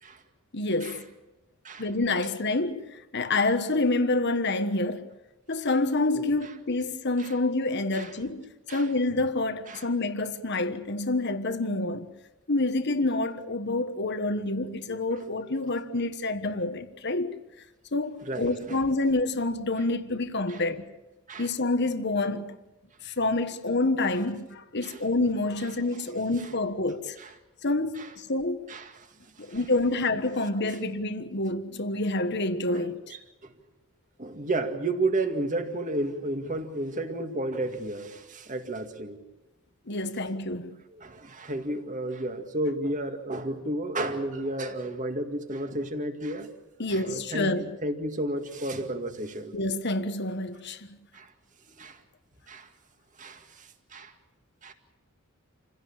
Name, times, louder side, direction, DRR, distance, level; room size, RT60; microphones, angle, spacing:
voice 1, 0.5-1.1 1.8-5.1 5.5-12.1 12.5-17.4 17.9-20.9 21.4-22.6 23.0-27.2 27.6-28.7 29.4-33.1 39.9-40.8 46.8-47.7 49.5-50.9, left 2 dB, 50° left, 1.4 m, -28 dB
voice 2, 18.3-18.8 20.5-20.6 21.3-21.5 24.8-25.0 27.2-27.3 28.0-28.1 28.7-28.9 29.4-29.6 32.7-32.8 33.4-33.5 34.2-39.2 40.9-46.5 46.9-49.5 51.1-51.3 51.8-52.0 52.5-52.7 53.2-54.1 54.6-54.7, right 2 dB, 35° right, 2.1 m, -32 dB
28.0 x 16.5 x 8.8 m
head